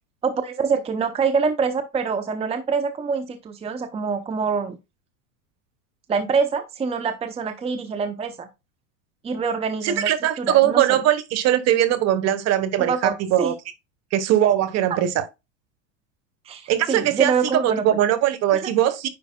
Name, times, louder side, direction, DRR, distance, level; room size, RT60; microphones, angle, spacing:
voice 1, 0.2-4.8 6.1-8.5 9.2-10.1 10.4-11.0 12.8-13.5 14.9-15.0 16.5-17.9 18.5-18.7, right 5 dB, 15° right, 0.7 m, -25 dB
voice 2, 9.8-13.5 14.1-15.2 16.7-19.1, right 12 dB, 40° right, 1.2 m, -20 dB
9.7 x 5.3 x 2.3 m
supercardioid pair, 125°, 38 cm